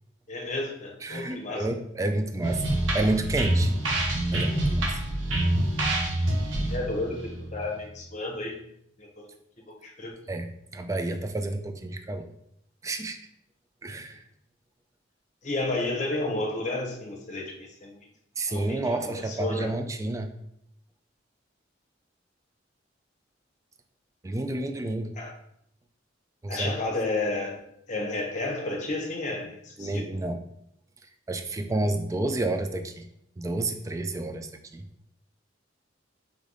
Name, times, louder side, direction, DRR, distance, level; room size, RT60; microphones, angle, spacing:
voice 1, 0.3-1.7 6.7-8.6 9.0-9.3 9.6-10.2 15.4-18.0 18.5-19.7 25.1-25.3 26.5-27.6 27.9-30.0, left 2 dB, 40° left, 0 dB, 0.9 m, -32 dB
voice 2, 1.0-2.7 2.9-3.7 4.3-5.0 10.3-12.3 12.8-13.2 13.8-14.2 18.4-20.3 24.2-25.1 26.4-26.7 29.8-30.4 31.3-33.1 33.4-34.9, right 2 dB, 15° right, 7 dB, 0.3 m, -30 dB
sound 1, 2.4-8.0, right 1 dB, 90° right, 1.0 m, -27 dB
3.6 x 3.4 x 3.9 m, 0.73 s
head